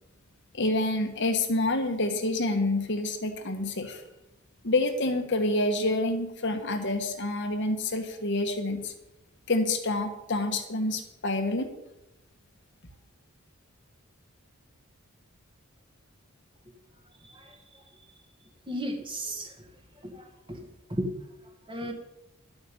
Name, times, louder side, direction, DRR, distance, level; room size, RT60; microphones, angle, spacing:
voice 1, 0.5-4.0 4.6-8.9 9.5-11.7, left 2 dB, 60° left, 6 dB, 1.5 m, -27 dB
voice 2, 17.2-17.6 18.7-19.5 20.0-20.6 20.9-21.1 21.7-21.9, equal, 25° right, 3 dB, 2.0 m, -34 dB
11.0 x 8.3 x 6.9 m, 0.91 s
head